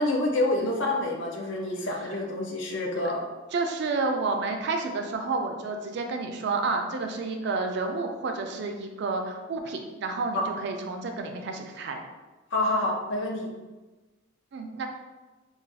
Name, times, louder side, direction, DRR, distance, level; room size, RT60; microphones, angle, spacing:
voice 1, 0.0-3.2 10.3-10.5 12.5-13.5, left 1 dB, 60° left, 0 dB, 0.5 m, -27 dB
voice 2, 3.5-12.0 14.5-14.9, right 3 dB, 55° right, 4 dB, 0.4 m, -30 dB
2.3 x 2.3 x 3.9 m, 1.2 s
head